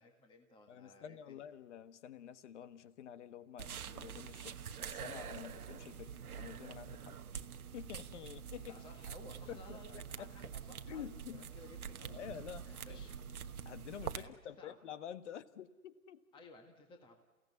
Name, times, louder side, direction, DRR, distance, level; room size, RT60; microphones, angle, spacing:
voice 1, 0.0-1.4 8.7-12.2 12.7-13.2 14.2-14.7 16.3-17.2, left 2 dB, 10° left, 4 dB, 1.6 m, -57 dB
voice 2, 0.7-7.4 7.7-8.8 9.5-10.3 10.9-11.5 12.1-13.1 13.6-16.2, left 9 dB, 50° left, 13 dB, 1.4 m, -49 dB
sound 1, 3.6-14.2, right 7 dB, 80° right, 1.3 m, -46 dB
29.0 x 17.0 x 9.7 m, 1.2 s
hypercardioid pair, 140°, 44 cm